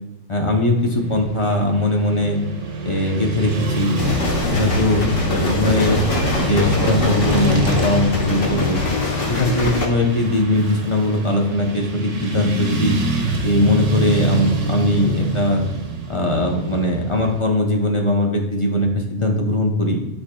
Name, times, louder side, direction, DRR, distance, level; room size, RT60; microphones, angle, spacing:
voice 1, 0.3-2.4 2.8-4.0 4.4-6.0 6.3-8.8 9.3-13.0 13.4-15.6 16.1-20.0, left 1 dB, 30° left, 1 dB, 0.7 m, -20 dB
Motorcycle / Traffic noise roadway noise, 0.8-17.4, right 1 dB, 70° right, 1.2 m, -26 dB
sound 1, 4.0-9.9, left 3 dB, 85° left, 1.4 m, -23 dB
11.5 x 4.3 x 2.3 m, 0.92 s
omnidirectional pair, 1.3 m